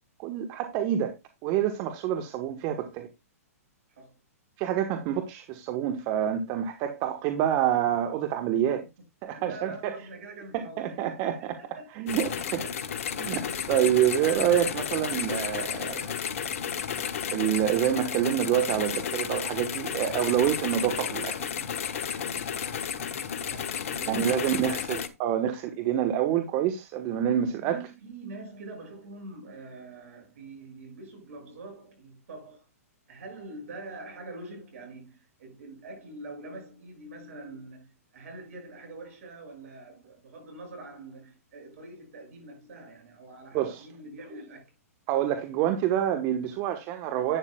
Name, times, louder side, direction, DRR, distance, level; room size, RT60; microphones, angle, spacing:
voice 1, 0.2-1.1 1.4-3.1 4.6-8.8 9.2-9.9 10.5-11.6 11.9-12.7 13.2-16.1 17.3-21.5 24.1-27.8 43.5-43.8 45.1-47.4, right 10 dB, 35° right, 1.2 m, -27 dB
voice 2, 9.4-12.0 13.6-13.7 22.9-24.8 27.7-32.7 33.1-44.7, right 2 dB, 65° right, 7.1 m, -45 dB
sound 1, 12.1-25.1, left 8 dB, 60° left, 1.3 m, -32 dB
11.5 x 9.6 x 2.3 m
hypercardioid pair, 125°, 8 cm